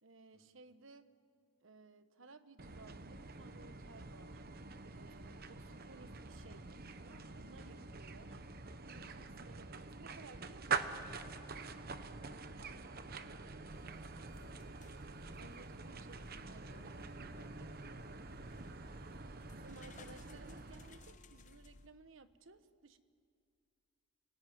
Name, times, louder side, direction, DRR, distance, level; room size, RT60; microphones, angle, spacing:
voice 1, 0.0-1.1 1.6-4.4 4.8-6.7 7.0-8.4 8.9-11.0 12.5-12.9 15.4-16.8 19.5-23.0, right 3 dB, 75° right, 11 dB, 1.2 m, -58 dB
sound 1, 2.6-21.2, right 4 dB, 50° right, 1.0 m, -46 dB
voice 2, 7.6-8.4 11.5-12.0 14.0-15.0 16.4-18.5, left 1 dB, 65° left, -4 dB, 4.4 m, -67 dB
sound 2, 13.7-21.9, left 2 dB, 40° left, 1.0 m, -60 dB
29.5 x 19.5 x 9.5 m, 2.3 s
head